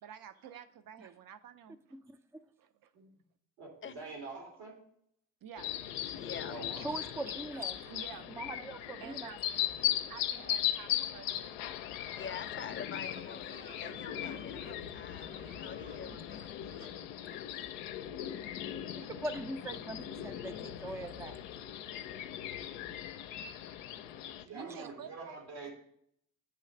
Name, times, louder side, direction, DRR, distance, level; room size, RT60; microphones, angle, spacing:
voice 1, 0.0-2.0 2.6-2.9 5.4-6.1 6.7-6.9 7.8-8.4 9.0-9.4 10.1-11.9 13.8-13.9 15.5-15.6 16.8-17.0 19.9-20.0 20.8-21.4 23.1-23.2 24.5-25.1, right 8 dB, 55° right, 11 dB, 0.7 m, -51 dB
voice 2, 3.6-4.7 6.5-7.0 10.0-10.1 24.4-25.7, right 3 dB, 80° right, -1 dB, 2.2 m, -45 dB
sound 1, 5.6-24.4, left 11 dB, 85° left, 0.5 m, -38 dB
voice 3, 6.1-6.6 12.1-16.6, left 7 dB, 30° left, 10 dB, 0.7 m, -46 dB
voice 4, 6.8-7.9 8.3-9.3 15.6-16.2 19.0-21.3, right 2 dB, 5° right, 10 dB, 0.4 m, -42 dB
sound 2, 12.0-18.0, right 2 dB, 20° right, 0.8 m, -57 dB
8.9 x 3.1 x 6.6 m, 0.70 s
hypercardioid pair, 50°, 42 cm